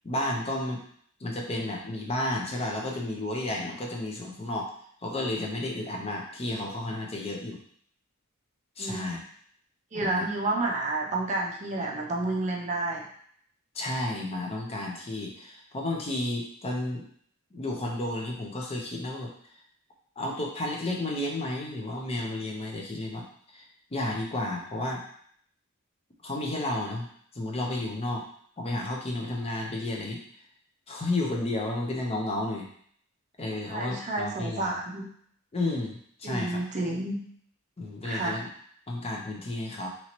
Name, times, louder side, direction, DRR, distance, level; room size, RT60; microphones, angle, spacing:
voice 1, 0.0-0.8 1.2-4.7 5.0-7.6 8.8-9.2 9.9-10.3 13.7-17.1 17.5-19.3 20.2-23.2 23.5-23.6 23.9-25.0 26.2-27.1 27.3-28.2 28.6-30.2 30.9-32.7 33.4-34.8 35.5-36.6 37.8-38.5 38.9-39.9, left 1 dB, 25° left, -1 dB, 0.5 m, -32 dB
voice 2, 9.9-13.1 33.7-35.1 36.2-37.2 38.0-38.4, right 2 dB, 30° right, -1 dB, 0.5 m, -30 dB
2.9 x 2.7 x 2.9 m, 0.63 s
head